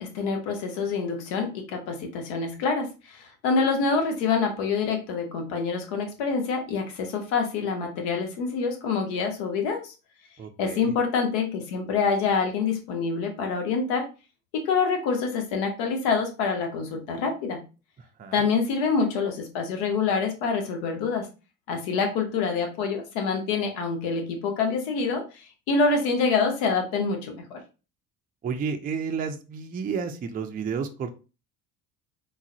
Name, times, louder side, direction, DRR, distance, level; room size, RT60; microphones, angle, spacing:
voice 1, 0.0-9.9 10.6-14.1 14.5-17.6 18.3-21.3 21.7-27.6, left 5 dB, 70° left, 4 dB, 0.9 m, -26 dB
voice 2, 10.4-10.9 18.2-18.5 28.4-31.1, right 6 dB, 20° right, 5 dB, 0.4 m, -31 dB
3.8 x 2.1 x 2.6 m, 0.32 s
hypercardioid pair, 60°, 48 cm